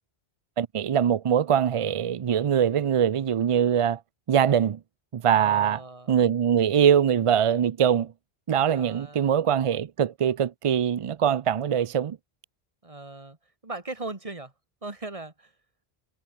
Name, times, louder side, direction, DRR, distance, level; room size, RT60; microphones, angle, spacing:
voice 1, 0.6-4.0 4.3-4.8 5.1-5.8 6.1-8.1 8.5-12.2, right 8 dB, 55° right, 0.4 m, -22 dB
voice 2, 5.3-6.1 8.7-9.3 12.8-13.4 13.6-14.5 14.8-15.5, right 2 dB, 35° right, 2.0 m, -38 dB
omnidirectional pair, 1.0 m